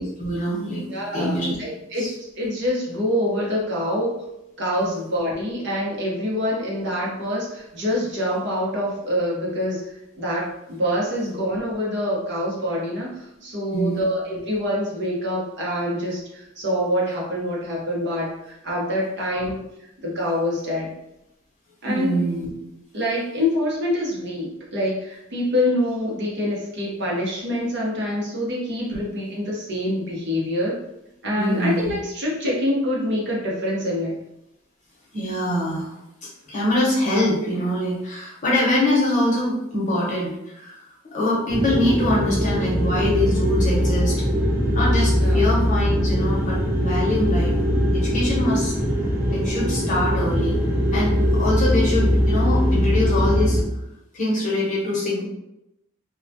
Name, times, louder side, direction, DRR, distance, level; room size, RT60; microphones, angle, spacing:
voice 1, 0.0-0.8 1.1-1.6 2.0-2.1 13.7-14.0 21.9-22.5 31.4-31.9 35.1-35.9 36.5-40.8 41.1-44.2 44.7-47.5 47.9-48.7 49.3-50.6 50.9-53.6 54.1-55.2, left 1 dB, 40° left, -5 dB, 0.8 m, -23 dB
voice 2, 0.9-4.2 4.6-20.9 21.8-22.2 22.9-30.8 31.2-34.1 45.2-45.5, left 1 dB, 60° right, -4 dB, 0.7 m, -26 dB
sound 1, 41.5-53.6, equal, 10° right, 0.7 m, -21 dB
2.2 x 2.1 x 2.6 m, 0.85 s
head